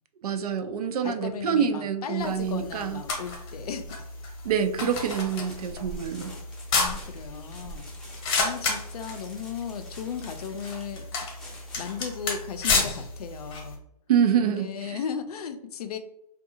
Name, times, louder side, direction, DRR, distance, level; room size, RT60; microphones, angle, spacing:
voice 1, 0.2-3.0 4.4-6.4 14.1-15.0, right 8 dB, 75° right, 8 dB, 0.4 m, -26 dB
voice 2, 1.0-4.1 4.8-4.9 6.7-7.9 8.2-11.1 11.8-13.8 14.4-16.0, left 7 dB, 75° left, 8 dB, 0.5 m, -36 dB
sound 1, 2.2-13.8, left 3 dB, 40° left, 0.8 m, -32 dB
sound 2, 4.9-12.0, left 1 dB, 5° left, 0.5 m, -49 dB
2.6 x 2.3 x 2.7 m, 0.82 s
hypercardioid pair, 140°, 19 cm